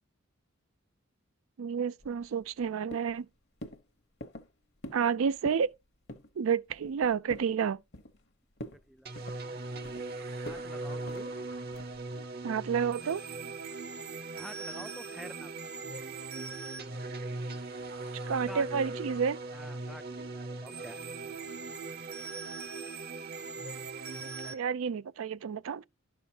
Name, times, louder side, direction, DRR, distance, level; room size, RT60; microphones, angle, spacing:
voice 1, 1.6-3.3 4.9-5.7 6.4-7.8 12.4-13.2 18.3-19.4 24.2-25.8, right 6 dB, 75° right, 0.4 m, -30 dB
sound 1, 2.0-2.6 2.9-3.3 3.6-3.8 4.2-4.5 4.8-5.1 5.4-5.7 6.1-6.3 6.7-7.5 7.9-8.3 8.6-8.8 9.1-10.1 10.5-10.7 11.1-11.3 11.7-12.0, equal, 50° left, 1.0 m, -45 dB
voice 2, 8.7-10.0 10.4-11.3 14.4-15.5 18.5-18.7 19.5-21.0, equal, ahead, 0.4 m, -49 dB
sound 2, 9.1-24.5, right 3 dB, 45° right, 0.8 m, -39 dB
11.5 x 5.5 x 2.8 m
head